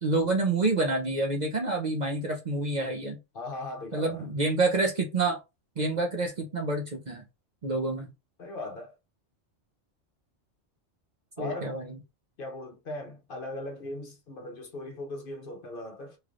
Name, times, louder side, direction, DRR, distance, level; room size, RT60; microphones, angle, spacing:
voice 1, 0.0-3.2 3.9-5.4 5.8-7.2 7.6-8.1 11.4-11.9, right 2 dB, 45° right, 0.7 m, -28 dB
voice 2, 3.3-4.3 8.4-9.0 11.4-11.8 12.4-16.2, left 2 dB, 55° left, 0.8 m, -38 dB
3.1 x 3.0 x 2.5 m
omnidirectional pair, 1.3 m